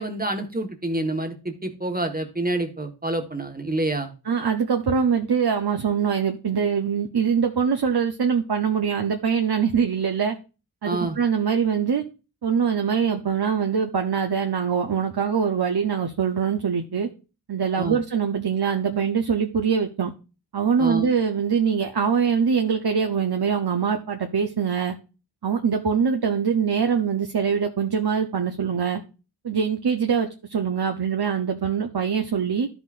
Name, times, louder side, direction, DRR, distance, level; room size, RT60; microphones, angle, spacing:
voice 1, 0.0-4.1 10.8-11.2 17.8-18.0 20.8-21.1, right 1 dB, 20° right, 5 dB, 1.4 m, -27 dB
voice 2, 4.3-10.3 10.8-12.0 12.4-17.1 17.5-20.1 20.5-24.9 25.4-29.0 29.4-32.7, right 6 dB, 65° right, 5 dB, 0.9 m, -23 dB
12.5 x 6.0 x 2.5 m, 0.32 s
wide cardioid pair, 65°, 41 cm